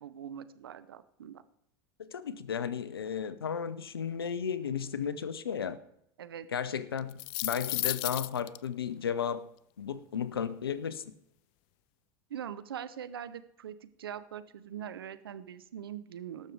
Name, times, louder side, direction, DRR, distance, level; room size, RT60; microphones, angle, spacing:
voice 1, 0.0-1.4 6.2-6.5 12.3-16.5, right 9 dB, 80° right, 13 dB, 0.7 m, -42 dB
voice 2, 2.0-5.8 6.5-9.4 9.8-11.0, left 7 dB, 90° left, 15 dB, 0.8 m, -34 dB
sound 1, 7.0-8.6, left 23 dB, 50° left, 0.4 m, -33 dB
18.5 x 6.7 x 4.7 m, 0.76 s
hypercardioid pair, 90°, 12 cm